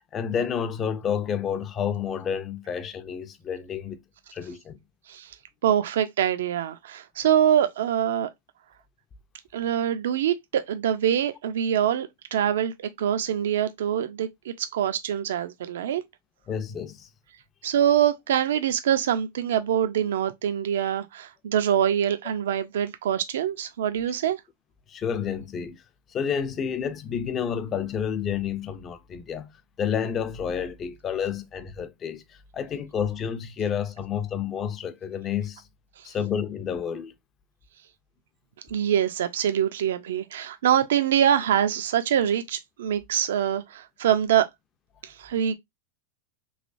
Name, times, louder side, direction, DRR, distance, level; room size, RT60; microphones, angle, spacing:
voice 1, 0.0-4.0 4.3-4.8 16.5-17.1 24.9-25.8 26.1-29.5 29.8-32.2 32.5-35.6 36.0-37.1, left 7 dB, 20° left, 0.4 m, -30 dB
voice 2, 5.6-8.3 9.5-16.0 17.6-24.4 36.0-36.1 38.7-44.5 45.0-45.5, right 10 dB, 80° right, 0.4 m, -24 dB
3.2 x 3.0 x 2.5 m
supercardioid pair, 155°, 0 cm